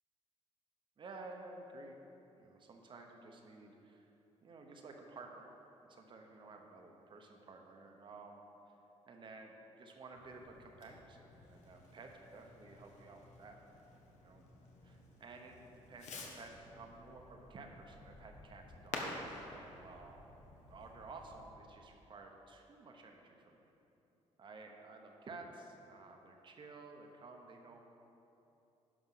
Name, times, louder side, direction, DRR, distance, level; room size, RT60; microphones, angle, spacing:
voice 1, 1.0-2.0 2.4-4.1 4.4-5.5 5.8-8.8 9.1-13.6 14.1-14.5 14.8-15.6 15.9-20.4 20.7-23.6 24.4-27.8, right 3 dB, 45° right, 2 dB, 1.1 m, -53 dB
Fireworks, 10.1-21.5, left 3 dB, 80° left, 1.3 m, -51 dB
11.0 x 5.2 x 5.8 m, 3.0 s
cardioid pair, 125°, 12 cm